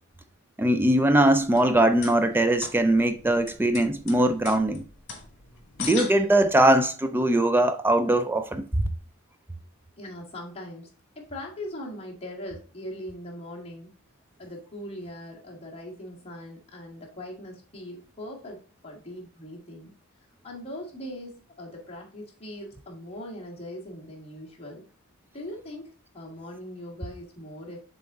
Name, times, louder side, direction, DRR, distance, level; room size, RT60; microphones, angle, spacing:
voice 1, 0.6-4.8 5.8-8.7, right 1 dB, 10° right, 0.3 m, -21 dB
sound 1, 1.4-6.8, left 5 dB, 55° left, 2.1 m, -40 dB
voice 2, 10.0-14.0 14.4-19.9 20.4-24.8 25.3-27.8, left 1 dB, 30° left, 1.8 m, -40 dB
7.0 x 3.8 x 3.6 m
head